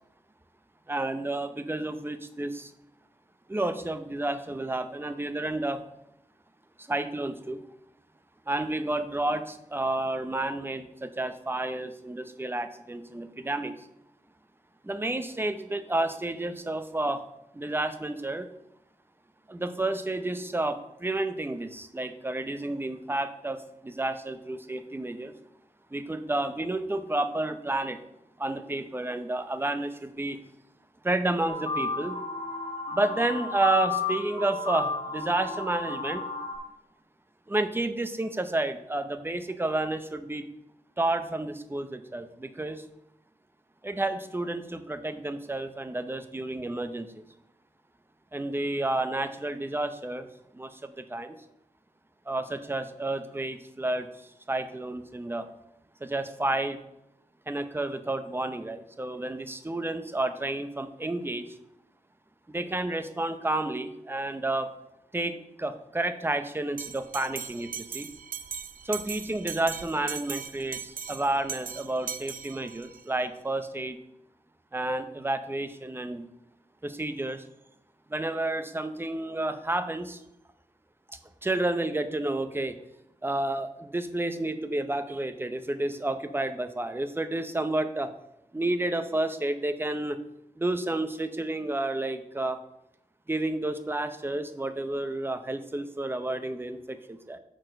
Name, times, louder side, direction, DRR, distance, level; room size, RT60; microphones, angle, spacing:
voice 1, 0.9-2.7 3.5-5.8 6.8-7.6 8.5-13.9 14.8-17.2 17.5-18.5 19.5-25.3 25.9-28.0 28.4-30.4 31.0-32.2 32.9-36.2 37.5-40.5 41.0-42.8 43.8-47.2 48.3-50.3 50.5-51.4 52.3-54.1 54.5-55.5 56.0-56.8 57.5-61.4 62.5-64.7 65.1-68.1 68.8-74.0 74.7-76.3 76.8-77.4 78.1-80.2 81.1-82.8 83.2-88.1 88.5-90.2 90.6-92.6 93.3-97.4, right 2 dB, 15° right, 10 dB, 0.7 m, -30 dB
sound 1, 31.5-36.6, left 3 dB, 40° left, 1.2 m, -33 dB
Bell, 66.8-73.0, right 7 dB, 75° right, 0.4 m, -39 dB
6.3 x 4.4 x 6.3 m, 0.81 s
wide cardioid pair, 95°, 14 cm